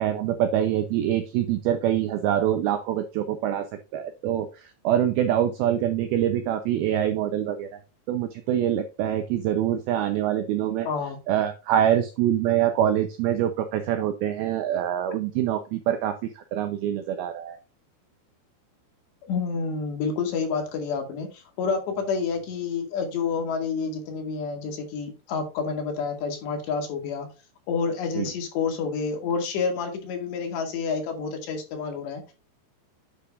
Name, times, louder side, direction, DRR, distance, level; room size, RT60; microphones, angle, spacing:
voice 1, 0.0-3.7 3.9-7.7 8.1-10.9 11.3-17.6 28.2-28.3, right 11 dB, 80° right, 8 dB, 2.2 m, -25 dB
voice 2, 10.9-11.2 19.3-27.3 27.7-32.3, left 5 dB, 70° left, 3 dB, 4.4 m, -29 dB
9.7 x 7.0 x 2.5 m, 0.30 s
omnidirectional pair, 5.2 m